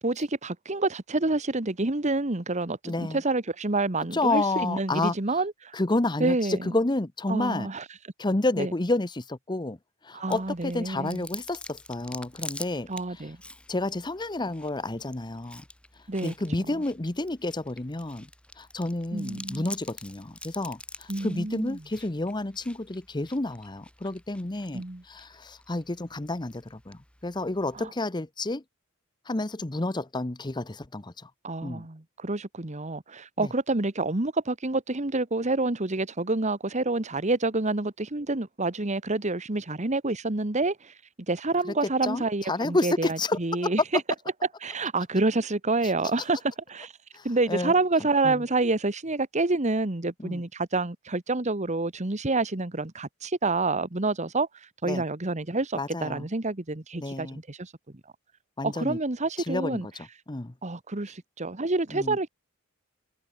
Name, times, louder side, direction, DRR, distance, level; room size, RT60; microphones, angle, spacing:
voice 1, 0.0-5.7 6.2-6.7 7.3-7.8 8.6-8.7 10.1-11.2 12.9-13.4 16.1-16.3 19.1-19.7 21.1-21.8 24.7-25.0 27.7-27.9 31.4-40.9 41.3-44.0 44.6-46.9 47.2-54.5 54.8-57.7 58.6-59.9 60.6-62.3, right 2 dB, 35° right, 1.4 m, -28 dB
voice 2, 2.8-3.2 4.1-5.1 5.7-7.7 8.2-9.8 10.0-13.3 13.7-15.6 16.2-18.3 18.6-28.6 29.3-31.3 31.6-31.9 33.4-33.5 42.0-43.7 47.1-47.7 48.2-48.4 50.2-50.4 54.9-55.0 55.7-56.3 57.0-57.4 58.6-59.0 59.4-59.8 60.3-60.5 61.9-62.2, left 2 dB, 20° left, 0.8 m, -30 dB
Chewing mastication, 10.3-27.9, left 2 dB, 5° left, 7.3 m, -47 dB
head